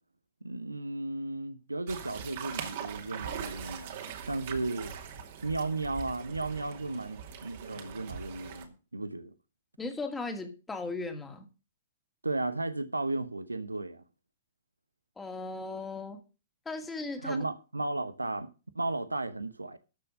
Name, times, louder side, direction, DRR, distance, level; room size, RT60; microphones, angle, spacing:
voice 1, 0.4-4.0 4.3-4.9 5.4-9.3 12.2-14.0 17.2-18.5 18.7-19.8, right 2 dB, 80° right, 0.9 m, -34 dB
sound 1, 1.9-8.6, right 8 dB, 50° right, 2.3 m, -41 dB
voice 2, 9.8-11.5 15.2-16.2 16.7-17.4, left 3 dB, 10° left, 2.3 m, -37 dB
13.0 x 6.7 x 5.4 m
figure-of-eight pair, 110°, 0 cm